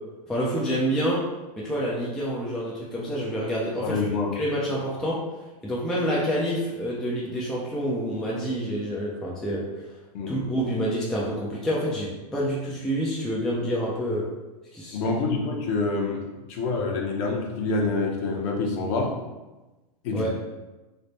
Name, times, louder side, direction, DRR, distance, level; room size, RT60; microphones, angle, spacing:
voice 1, 0.3-1.2 1.6-4.0 4.3-5.2 5.6-9.9 10.3-14.2 14.7-15.0 20.1-20.3, equal, ahead, -5 dB, 0.3 m, -27 dB
voice 2, 3.8-4.3 10.1-10.3 14.9-16.2 16.5-19.1 20.0-20.3, left 3 dB, 45° left, 0 dB, 0.7 m, -26 dB
3.3 x 2.1 x 3.9 m, 1.1 s
hypercardioid pair, 145°, 20 cm